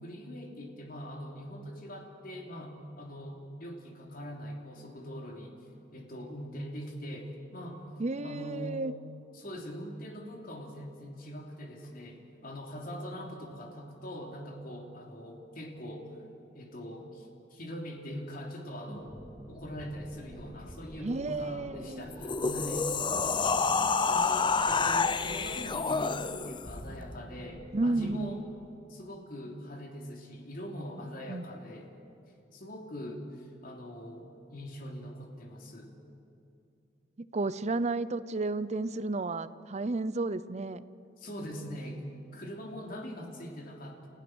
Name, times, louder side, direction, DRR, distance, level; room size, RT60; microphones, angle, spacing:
voice 1, 0.0-5.6 5.9-7.8 8.2-8.8 9.3-16.1 16.5-19.1 19.5-22.9 24.1-28.4 28.9-31.9 32.5-35.9 41.2-42.0 42.3-44.1, equal, 55° left, 1 dB, 3.3 m, -42 dB
voice 2, 8.0-8.9 21.0-22.0 24.6-24.7 27.7-28.4 31.3-31.5 37.2-40.8, right 2 dB, 40° right, 15 dB, 0.6 m, -32 dB
sound 1, 18.9-28.3, equal, 10° left, 3.1 m, -47 dB
sound 2, 22.1-26.7, left 4 dB, 25° left, 0.6 m, -28 dB
30.0 x 15.5 x 6.3 m, 2.8 s
head